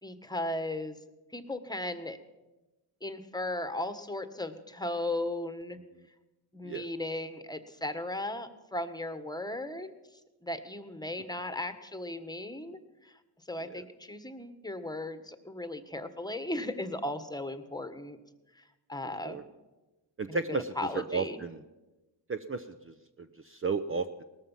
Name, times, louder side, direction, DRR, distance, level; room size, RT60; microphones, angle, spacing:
voice 1, 0.0-1.0 1.3-2.2 3.0-5.8 6.5-9.9 10.4-13.1 13.5-18.2 18.6-18.7 18.9-19.4 20.3-20.4 20.8-21.4, left 1 dB, 10° left, 10 dB, 1.4 m, -36 dB
voice 2, 20.2-21.6 22.3-24.2, right 4 dB, 25° right, 9 dB, 0.7 m, -34 dB
19.0 x 13.5 x 5.7 m, 1.1 s
cardioid pair, 70°, 47 cm